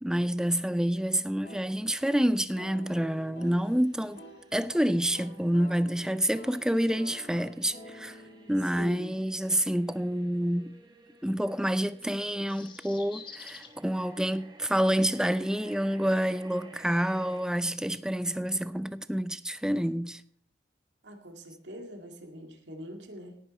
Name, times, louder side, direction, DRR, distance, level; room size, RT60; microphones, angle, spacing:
voice 1, 0.0-4.2 4.5-8.2 8.5-10.7 11.2-20.2, equal, 5° right, 0.5 m, -28 dB
sound 1, 1.4-10.0, equal, 70° left, 5.3 m, -50 dB
sound 2, 3.4-17.5, right 1 dB, 25° right, 2.2 m, -56 dB
voice 2, 8.7-9.1 17.1-17.4 21.0-23.4, equal, 80° right, 2.2 m, -44 dB
sound 3, 12.0-13.8 15.2-15.3, left 5 dB, 25° left, 1.3 m, -48 dB
18.0 x 9.4 x 4.3 m
head